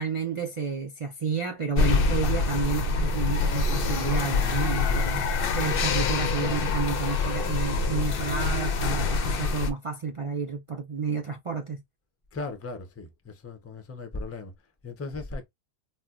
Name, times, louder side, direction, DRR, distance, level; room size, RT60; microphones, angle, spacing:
voice 1, 0.0-5.2 5.5-11.8, right 5 dB, 55° right, 0.3 m, -31 dB
sound 1, 1.8-9.7, left 4 dB, 60° left, 0.7 m, -25 dB
sound 2, 3.3-9.5, right 9 dB, 80° right, 1.0 m, -44 dB
voice 2, 12.3-14.5 14.8-15.5, left 3 dB, 20° left, 0.4 m, -37 dB
4.2 x 2.0 x 2.4 m
omnidirectional pair, 1.2 m